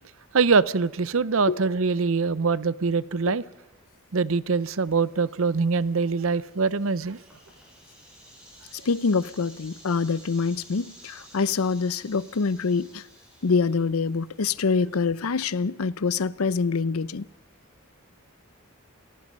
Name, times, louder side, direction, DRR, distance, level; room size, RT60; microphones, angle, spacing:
voice 1, 0.3-3.4 4.1-7.2, right 4 dB, 70° right, 0.7 m, -23 dB
sound 1, 4.5-15.5, equal, 5° right, 7.3 m, -53 dB
voice 2, 8.9-13.0 13.4-17.3, left 4 dB, 85° left, 0.6 m, -25 dB
29.0 x 18.0 x 5.3 m
head